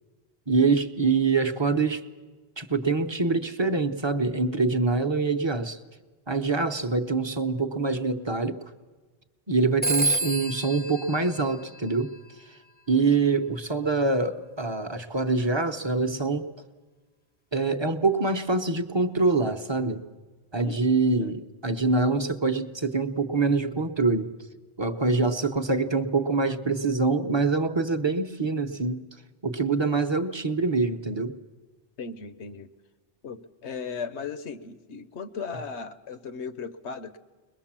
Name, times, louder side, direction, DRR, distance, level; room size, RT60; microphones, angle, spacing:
voice 1, 0.5-2.0 2.6-5.8 6.3-8.6 9.5-12.1 12.9-16.5 17.5-20.0 20.5-24.3 24.8-29.0 29.4-31.4, right 3 dB, 25° right, 7 dB, 0.7 m, -25 dB
Telephone, 9.8-12.3, right 2 dB, 10° left, 0.5 m, -29 dB
voice 2, 20.6-21.4 32.0-32.7 33.2-37.2, left 5 dB, 80° left, 11 dB, 1.2 m, -37 dB
22.0 x 21.5 x 7.4 m, 1.3 s
omnidirectional pair, 1.2 m